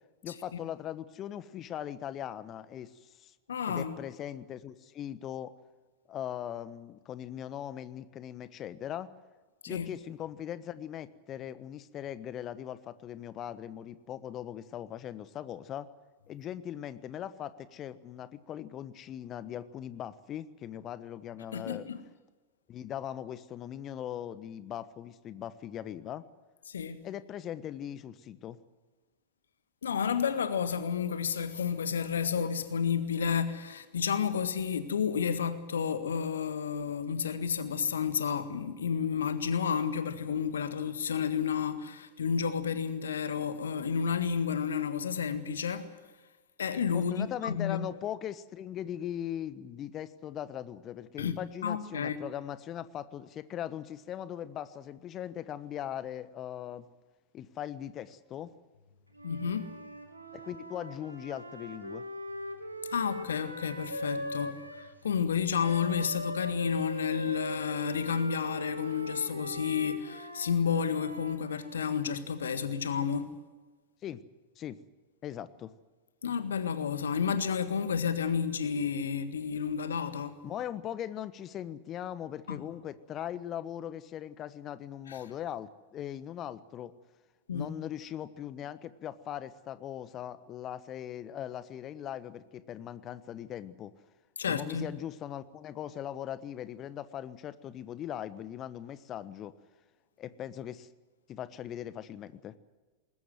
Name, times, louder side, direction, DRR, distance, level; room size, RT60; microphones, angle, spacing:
voice 1, 0.2-3.3 3.7-5.5 6.1-9.1 9.7-15.9 16.3-21.9 22.7-26.2 27.0-28.6 46.9-56.9 57.3-58.5 60.3-62.0 74.0-74.2 74.6-74.8 75.2-75.7 80.4-86.9 87.5-93.9 94.5-99.5 100.2-100.9 101.3-102.5, left 10 dB, 30° left, 1.2 m, -40 dB
voice 2, 3.5-4.0 9.6-9.9 21.5-22.0 26.7-27.1 29.8-46.0 46.6-47.8 51.2-52.2 59.2-59.7 62.9-73.4 76.2-80.4 82.5-82.6 85.1-85.2 87.5-87.7 94.4-94.9, left 7 dB, 65° left, 1.6 m, -31 dB
Wind instrument woodwind instrument, 59.1-64.9 65.6-72.1, equal, 85° right, 2.6 m, -41 dB
21.0 x 20.0 x 7.9 m
figure-of-eight pair, 90°, 0 cm